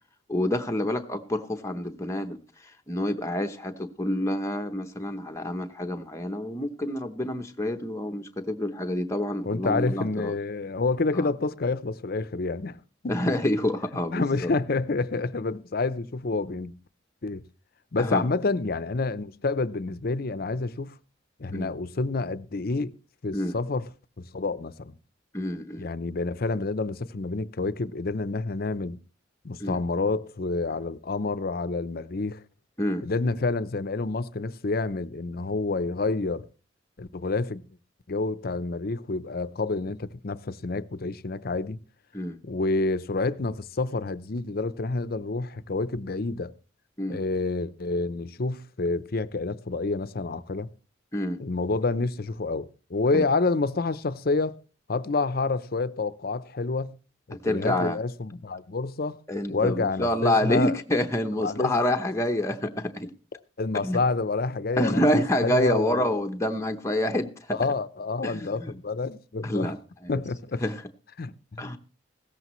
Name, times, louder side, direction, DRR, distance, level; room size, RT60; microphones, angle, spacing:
voice 1, 0.3-10.3 11.1-11.3 13.1-14.5 18.0-18.2 21.5-21.7 23.3-23.6 25.3-25.9 29.6-29.8 32.8-33.1 42.1-42.4 47.0-47.2 51.1-51.4 53.1-53.2 57.4-58.0 59.3-63.1 63.7-64.0 64.7-67.6 68.2-68.7 69.4-70.2 70.6-70.8 71.6-71.8, left 1 dB, 15° left, 0.8 m, -27 dB
voice 2, 9.5-12.8 13.0-13.1 14.1-16.7 17.2-17.4 17.9-21.0 21.4-22.9 23.2-23.9 24.2-24.9 25.8-29.0 29.4-32.4 33.0-36.5 37.0-37.6 38.1-41.8 42.4-46.5 47.1-50.7 51.4-54.6 54.9-57.0 57.3-59.2 59.5-60.8 61.4-61.7 63.6-66.1 67.5-69.7 70.1-70.6 71.2-71.7, left 3 dB, 50° left, 0.7 m, -28 dB
16.5 x 14.0 x 3.1 m
head